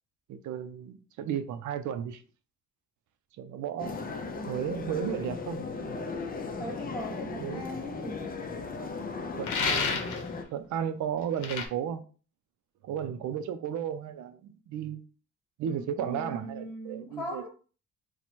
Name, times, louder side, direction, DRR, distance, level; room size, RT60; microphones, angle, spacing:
voice 1, 0.3-2.2 3.4-3.9 4.5-5.7 7.4-7.9 9.3-10.1 10.5-12.0 12.8-15.0 15.6-17.5, right 8 dB, 70° right, 0.5 m, -34 dB
sound 1, 3.8-10.4, left 4 dB, 30° left, 0.5 m, -37 dB
voice 2, 6.6-8.4 15.7-17.5, equal, 15° left, 1.0 m, -39 dB
sound 2, 9.4-10.3 11.4-11.7, left 5 dB, 80° left, 0.7 m, -29 dB
2.9 x 2.2 x 4.2 m
cardioid pair, 90°, 30 cm